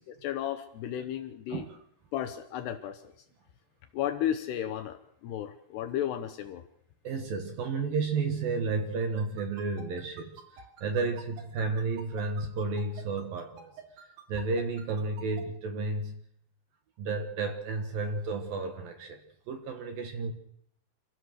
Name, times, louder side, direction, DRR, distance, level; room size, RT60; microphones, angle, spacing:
voice 1, 0.2-1.7 2.1-3.1 3.9-6.6, left 11 dB, 75° left, 9 dB, 2.7 m, -33 dB
voice 2, 7.0-13.7 14.0-16.2 17.0-19.2 19.5-20.3, right 4 dB, 60° right, 5 dB, 2.6 m, -32 dB
sound 1, 9.2-15.4, right 7 dB, 80° right, 5.1 m, -47 dB
27.0 x 16.0 x 6.6 m, 0.75 s
omnidirectional pair, 5.5 m